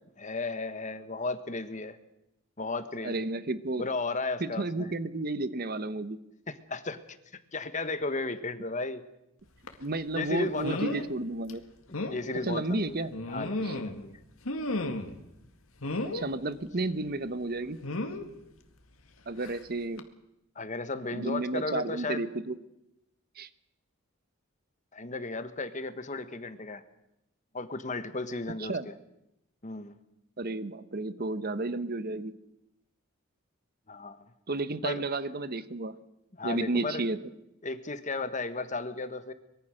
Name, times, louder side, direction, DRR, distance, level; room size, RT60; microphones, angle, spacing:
voice 1, 0.2-2.0 2.6-3.2 3.8-4.9 6.5-7.0 7.3-9.0 10.1-11.0 12.1-14.2 20.5-22.2 24.9-26.8 27.5-28.9 29.6-29.9 33.9-34.3 34.8-35.0 36.4-37.0 37.6-39.3, left 3 dB, 35° left, 11 dB, 1.4 m, -35 dB
voice 2, 3.0-3.8 4.4-6.2 9.8-11.6 12.4-13.1 13.6-13.7 16.1-17.8 19.3-20.1 21.1-22.6 23.4-23.5 28.6-28.9 30.4-32.3 34.5-35.9 36.4-37.2, right 2 dB, 45° right, 13 dB, 1.0 m, -32 dB
sound 1, 9.7-9.8 10.6-11.1 11.5-11.6 11.9-12.2 13.1-14.0 14.4-15.2 15.8-16.3 17.8-18.2 19.4-19.6 20.0-20.1, left 2 dB, 80° left, 2.1 m, -33 dB
24.0 x 22.0 x 6.5 m, 0.85 s
head